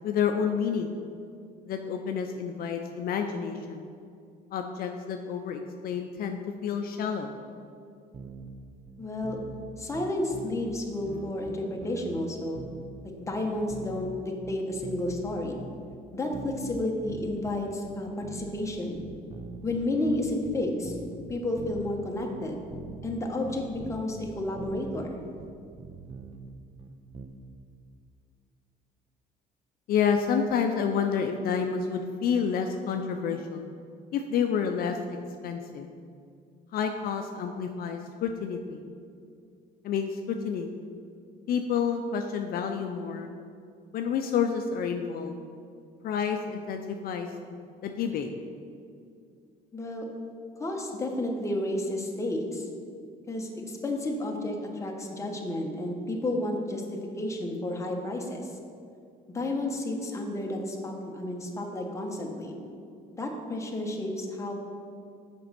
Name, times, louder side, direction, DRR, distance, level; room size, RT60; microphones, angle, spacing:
voice 1, 0.0-1.0 1.7-3.9 4.5-7.3 29.9-33.6 34.1-35.2 35.4-35.9 36.7-38.8 39.8-40.7 41.5-43.3 43.9-45.4 46.0-47.6 47.8-48.3, left 7 dB, 60° left, 5 dB, 0.5 m, -29 dB
sound 1, 8.1-8.5 8.9-9.6 9.9-10.8 11.1-12.2 12.6-13.0 13.3-15.3 15.6-16.0 16.3-17.6 17.8-18.6 18.9-22.0 22.3-23.2 23.4-24.2 24.6-27.3, right 5 dB, 30° right, 0.6 m, -43 dB
voice 2, 9.0-9.4 9.8-12.7 13.2-15.6 16.1-19.0 19.6-21.0 21.3-22.6 23.0-25.2 49.7-50.1 50.6-52.7 53.3-56.8 57.2-58.5 59.3-62.5 63.1-64.5, left 1 dB, 15° left, 0 dB, 1.2 m, -31 dB
6.7 x 5.3 x 5.9 m, 2.3 s
cardioid pair, 110°, 17 cm